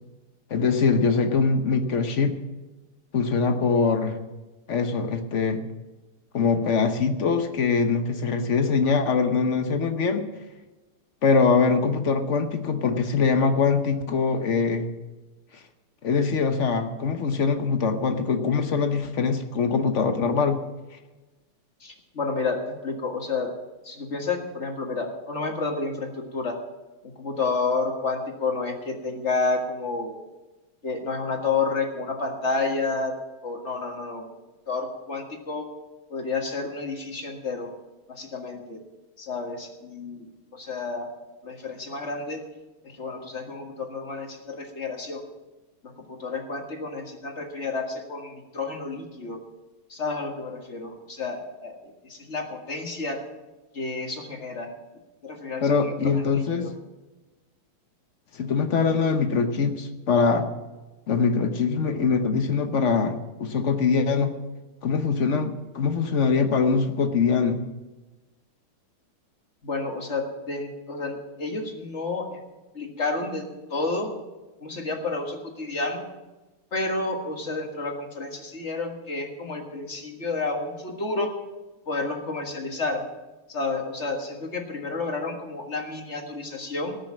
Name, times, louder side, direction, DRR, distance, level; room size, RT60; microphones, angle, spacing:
voice 1, 0.5-2.3 3.1-4.2 4.7-5.6 6.3-10.2 11.2-14.9 16.0-20.6 55.6-56.7 58.3-60.5 61.1-64.4 64.8-67.6, left 5 dB, 50° left, 7 dB, 0.8 m, -23 dB
voice 2, 21.8-23.5 23.8-26.6 27.2-30.2 30.8-33.1 33.4-34.3 34.7-35.7 36.1-37.7 38.1-38.8 39.2-40.3 40.5-41.1 41.4-42.5 42.8-45.2 45.8-49.4 49.9-53.3 53.7-54.7 55.2-56.7 69.6-72.4 72.7-74.1 74.6-76.1 76.7-81.3 81.9-83.1 83.5-87.0, left 3 dB, 35° left, 3 dB, 1.7 m, -30 dB
18.5 x 6.5 x 7.4 m, 1.1 s
omnidirectional pair, 2.4 m